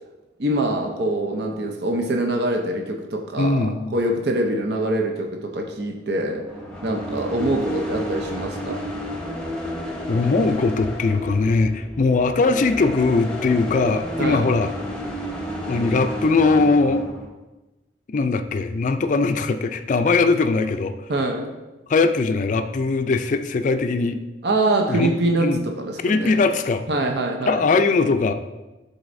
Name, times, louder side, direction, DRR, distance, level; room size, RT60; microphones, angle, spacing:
voice 1, 0.4-6.5 6.8-8.8 14.2-14.5 21.1-21.5 24.4-26.4 26.9-27.6, right 1 dB, 65° right, 2 dB, 0.6 m, -24 dB
voice 2, 3.4-3.9 10.1-14.7 15.7-17.1 18.1-20.9 21.9-24.2 24.9-25.1 25.4-25.6 26.0-26.8 27.5-28.3, left 3 dB, 45° left, 9 dB, 0.4 m, -20 dB
sound 1, 6.2-17.3, equal, 5° left, 0.9 m, -31 dB
11.0 x 4.0 x 2.6 m, 1.1 s
head